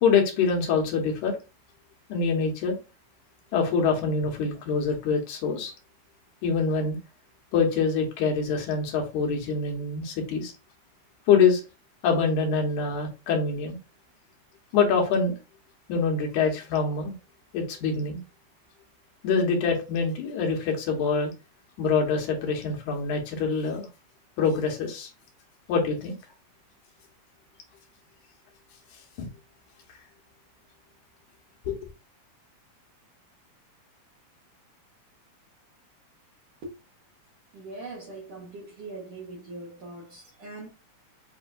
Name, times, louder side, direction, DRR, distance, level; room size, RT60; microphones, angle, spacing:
voice 1, 0.0-1.4 2.1-2.8 3.5-5.7 6.4-7.0 7.5-10.5 11.3-11.6 12.0-13.8 14.7-15.4 15.9-17.1 17.5-18.2 19.2-21.3 21.8-23.9 24.4-25.1 25.7-26.2 29.2-29.3 31.7-31.9, left 5 dB, 85° left, 2.5 m, -25 dB
voice 2, 37.5-40.7, right 2 dB, 65° right, 1.9 m, -41 dB
6.9 x 2.6 x 2.3 m
omnidirectional pair, 3.4 m